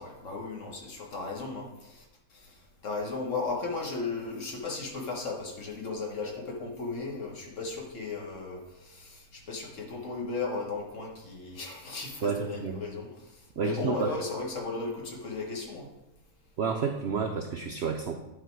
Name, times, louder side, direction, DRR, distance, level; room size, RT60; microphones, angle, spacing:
voice 1, 0.0-2.0 2.3-15.9, left 3 dB, 50° left, 0 dB, 1.6 m, -36 dB
voice 2, 12.2-12.8 13.6-14.2 16.6-18.2, right 6 dB, 65° right, 4 dB, 0.6 m, -30 dB
10.5 x 4.2 x 4.5 m, 0.93 s
omnidirectional pair, 1.7 m